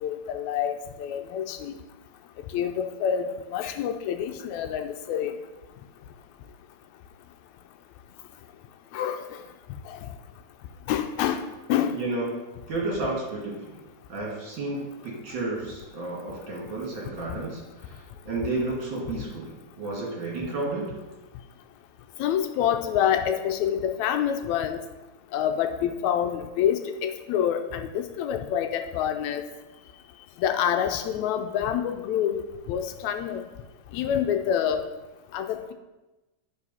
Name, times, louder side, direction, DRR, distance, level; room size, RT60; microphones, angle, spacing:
voice 1, 0.0-1.7 2.5-5.3 8.9-9.3 9.9-10.0 10.9-11.4 11.7-12.0 22.2-24.8 25.3-29.4 30.4-32.4 32.7-33.4 33.9-34.9 35.3-35.7, left 9 dB, 80° left, 7 dB, 1.9 m, -27 dB
voice 2, 11.9-13.8 14.1-20.9, right 2 dB, 45° right, -4 dB, 2.9 m, -32 dB
11.5 x 4.9 x 5.5 m, 1.1 s
omnidirectional pair, 3.3 m